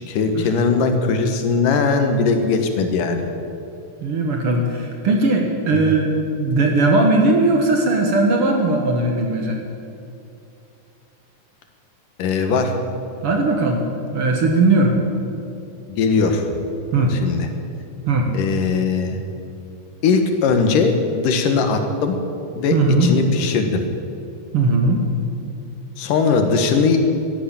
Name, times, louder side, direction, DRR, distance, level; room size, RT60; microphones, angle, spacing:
voice 1, 0.0-3.2 5.7-5.8 12.2-12.7 15.9-16.5 17.1-17.5 18.3-19.2 20.0-22.2 22.6-23.8 26.0-27.0, left 4 dB, 85° left, 6 dB, 2.9 m, -19 dB
voice 2, 4.0-6.1 6.4-9.6 13.2-13.8 14.1-14.9 16.9-17.2 18.1-18.3 22.7-23.1 24.5-25.0, right 2 dB, 55° right, 2 dB, 1.9 m, -18 dB
13.0 x 11.5 x 8.8 m, 2.7 s
omnidirectional pair, 3.7 m